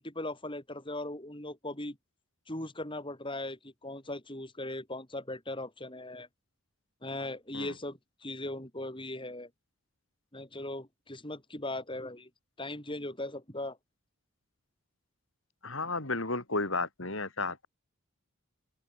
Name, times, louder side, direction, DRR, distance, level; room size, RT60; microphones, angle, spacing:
voice 1, 0.0-2.0 2.5-6.3 7.0-9.5 10.3-12.3 12.6-13.8, left 1 dB, 25° left, 4.9 m, -39 dB
voice 2, 15.6-17.7, left 3 dB, 60° left, 4.5 m, -33 dB
open air
head